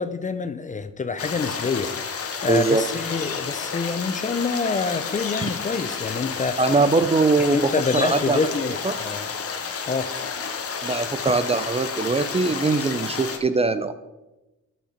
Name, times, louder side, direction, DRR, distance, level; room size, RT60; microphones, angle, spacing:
voice 1, 0.0-1.9 2.2-6.6 7.5-9.3 9.9-10.1, left 4 dB, 25° left, 0.6 m, -27 dB
sound 1, 1.2-13.4, left 6 dB, 50° left, 1.2 m, -31 dB
voice 2, 2.5-2.8 6.6-8.4 8.8-8.9 10.8-13.9, right 3 dB, 20° right, 0.5 m, -21 dB
11.5 x 5.8 x 4.3 m
cardioid pair, 90°, 30 cm